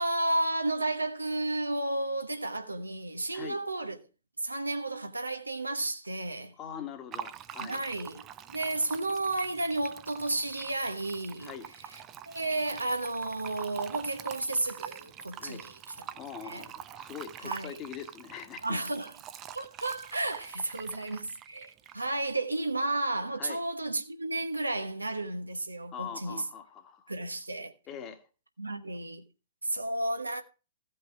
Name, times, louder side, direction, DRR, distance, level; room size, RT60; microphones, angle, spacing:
voice 1, 0.0-4.0 4.4-6.5 7.6-11.5 11.9-12.0 12.3-15.8 16.4-16.7 17.4-17.8 18.6-19.1 19.5-26.4 27.1-27.7 28.6-29.2 29.6-30.4, right 2 dB, 80° right, 1.1 m, -32 dB
voice 2, 6.6-7.8 11.4-11.7 15.4-15.6 16.2-18.8 20.9-21.0 23.4-23.6 25.9-27.1 27.9-28.2, left 8 dB, 25° left, 1.5 m, -43 dB
Fill (with liquid), 7.1-22.3, right 10 dB, 25° right, 0.5 m, -45 dB
15.5 x 5.5 x 4.6 m
figure-of-eight pair, 115°, 0 cm